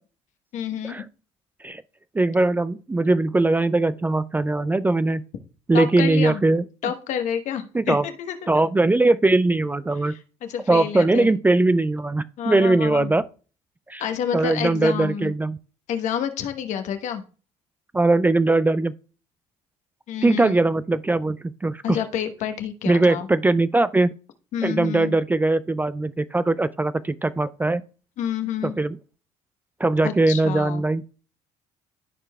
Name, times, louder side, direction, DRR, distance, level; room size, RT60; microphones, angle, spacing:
voice 1, 0.5-1.1 5.7-6.4 6.8-8.6 10.0-11.3 12.4-13.1 14.0-15.3 15.9-17.2 20.1-20.5 21.8-23.3 24.5-25.1 28.2-28.8 30.0-30.8, left 9 dB, 65° left, 1.1 m, -29 dB
voice 2, 2.1-5.2 5.7-6.6 7.7-8.0 8.5-10.2 10.7-13.2 13.9-14.0 14.3-15.6 17.9-18.9 20.2-22.0 22.9-24.1 24.6-27.8 28.6-29.0 29.8-31.0, right 2 dB, 15° right, 0.3 m, -20 dB
13.5 x 4.6 x 2.3 m
supercardioid pair, 75°, 13 cm